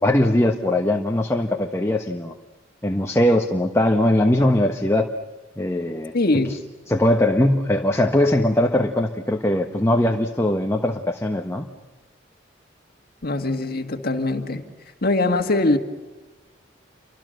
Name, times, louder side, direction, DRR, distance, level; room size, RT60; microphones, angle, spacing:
voice 1, 0.0-2.3 2.8-5.1 5.6-6.1 6.5-6.6 6.9-11.7, left 1 dB, 15° left, 1.3 m, -20 dB
voice 2, 6.1-6.6 13.2-14.6 15.0-15.8, left 2 dB, 50° left, 1.9 m, -22 dB
30.0 x 25.5 x 6.6 m
head